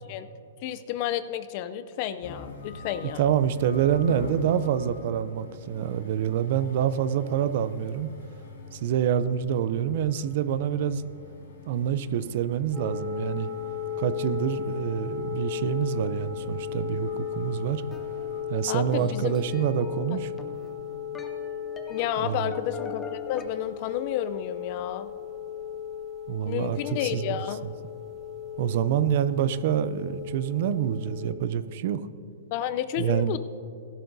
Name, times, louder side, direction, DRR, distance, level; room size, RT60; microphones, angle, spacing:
voice 1, 0.6-3.3 18.7-19.4 20.1-20.2 21.9-25.1 26.5-27.7 32.5-33.4, left 11 dB, 45° left, 13 dB, 0.5 m, -31 dB
sound 1, 2.2-18.4, left 2 dB, 80° left, 2.6 m, -45 dB
voice 2, 3.2-8.1 8.7-11.0 11.7-13.5 14.0-17.8 18.5-20.3 22.2-22.5 26.3-27.4 28.6-32.0 33.0-33.4, right 9 dB, 55° right, 15 dB, 0.5 m, -26 dB
sound 2, 12.7-31.3, left 8 dB, 20° right, 2.1 m, -36 dB
sound 3, 17.9-23.4, left 4 dB, 15° left, 1.0 m, -45 dB
16.5 x 11.5 x 2.7 m, 2.5 s
hypercardioid pair, 140°, 0 cm